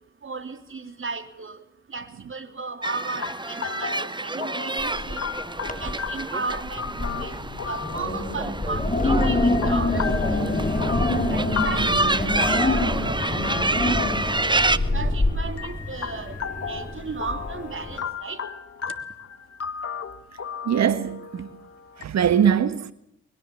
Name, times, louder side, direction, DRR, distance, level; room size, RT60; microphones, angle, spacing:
voice 1, 0.2-1.6 1.9-5.2 5.8-7.4 7.6-10.6 11.1-14.0 14.5-18.4, right 4 dB, 40° right, 3.2 m, -35 dB
sound 1, 2.8-22.0, left 6 dB, 50° left, 1.7 m, -35 dB
sound 2, 2.8-14.8, right 2 dB, 15° right, 1.1 m, -28 dB
Wind, 4.8-5.3 5.6-6.1 6.5-18.0, left 2 dB, 25° left, 5.9 m, -26 dB
voice 2, 20.6-21.5 22.0-22.9, right 8 dB, 60° right, 1.5 m, -22 dB
22.5 x 22.0 x 8.4 m
hypercardioid pair, 40°, 31 cm